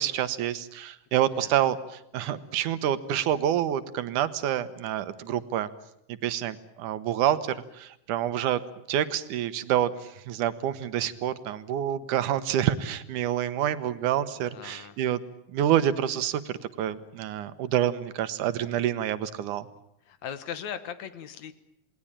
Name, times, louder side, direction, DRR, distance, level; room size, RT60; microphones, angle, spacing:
voice 1, 0.0-5.7 6.1-8.6 8.9-15.2 15.5-19.7, right 11 dB, 90° right, 13 dB, 2.6 m, -27 dB
voice 2, 14.5-15.0 20.1-21.5, left 8 dB, 70° left, 12 dB, 2.6 m, -38 dB
28.0 x 20.0 x 8.9 m, 0.78 s
omnidirectional pair, 3.4 m